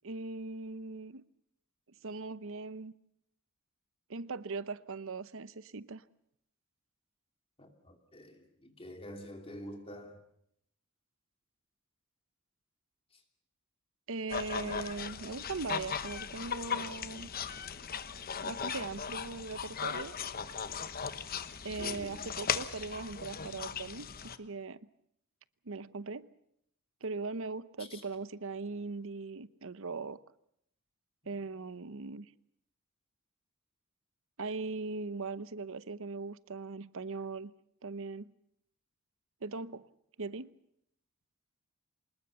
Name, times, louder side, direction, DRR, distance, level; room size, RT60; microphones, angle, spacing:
voice 1, 0.0-1.2 2.0-2.9 4.1-6.0 14.1-17.3 18.4-20.1 21.6-24.9 25.7-26.3 27.0-30.2 31.3-32.3 34.4-37.5 37.8-38.3 39.4-39.9 40.2-40.5, right 3 dB, 65° right, 0.9 m, -40 dB
voice 2, 7.6-10.2 21.8-22.3 27.8-28.0, equal, 25° left, 2.8 m, -47 dB
sound 1, 14.3-24.4, left 7 dB, 45° left, 1.1 m, -38 dB
25.5 x 20.5 x 7.0 m
head